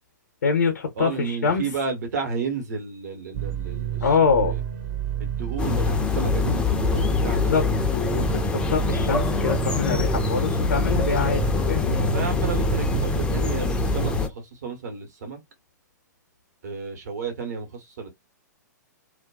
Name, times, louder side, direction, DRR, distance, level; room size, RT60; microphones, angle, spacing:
voice 1, 0.4-1.7 4.0-4.6 7.2-7.6 7.9-12.1, left 5 dB, 65° left, 0.7 m, -25 dB
voice 2, 1.0-4.6 5.2-7.5 12.1-15.4 16.6-18.1, right 4 dB, 65° right, 1.1 m, -32 dB
sound 1, 3.3-14.2, right 10 dB, 40° right, 0.6 m, -29 dB
sound 2, 5.6-14.3, left 6 dB, 10° left, 0.5 m, -25 dB
2.4 x 2.2 x 2.3 m
figure-of-eight pair, 110°, 10 cm